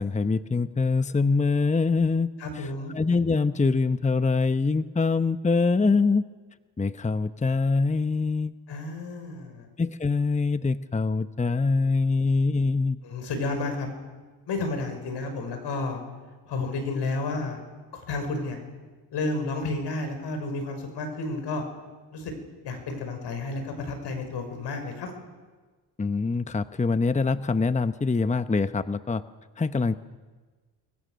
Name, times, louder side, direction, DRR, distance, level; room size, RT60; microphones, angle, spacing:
voice 1, 0.0-2.3 2.6-2.7 2.9-6.2 6.8-8.6 9.8-13.0 26.0-29.2 29.6-30.0, left 4 dB, 15° left, 11 dB, 0.9 m, -24 dB
voice 2, 2.4-2.9 8.7-9.7 13.0-13.9 14.5-16.0 16.5-17.6 17.9-18.6 19.1-21.6 22.1-22.3 22.6-25.1, left 3 dB, 75° left, 6 dB, 5.6 m, -31 dB
28.5 x 23.0 x 6.4 m, 1.3 s
supercardioid pair, 60°, 42 cm